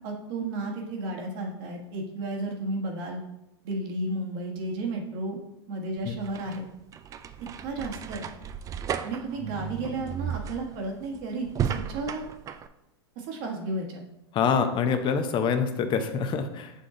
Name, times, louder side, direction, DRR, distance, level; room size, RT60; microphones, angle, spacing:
voice 1, 0.0-3.2 3.6-5.4 5.7-6.7 7.6-8.3 9.0-12.2 13.1-14.0, right 2 dB, 55° right, 1 dB, 1.5 m, -33 dB
sound 1, 6.0-12.7, right 8 dB, 25° right, 0.3 m, -34 dB
voice 2, 14.3-16.7, left 6 dB, 35° left, 8 dB, 0.8 m, -25 dB
6.9 x 3.7 x 3.9 m, 0.87 s
hypercardioid pair, 100°, 14 cm